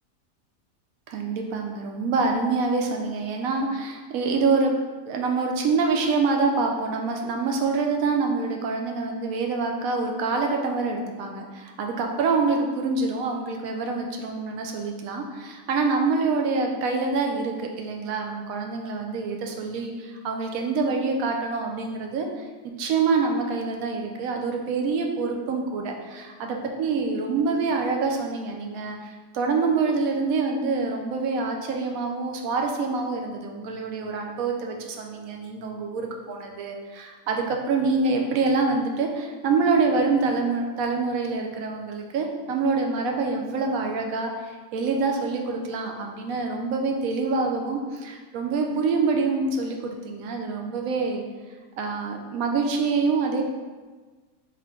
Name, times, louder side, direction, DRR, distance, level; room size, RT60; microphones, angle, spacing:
voice 1, 1.1-4.7 5.1-22.4 22.8-51.2 51.8-53.4, right 4 dB, 70° right, 2 dB, 0.9 m, -26 dB
3.4 x 3.0 x 3.6 m, 1.4 s
omnidirectional pair, 1.6 m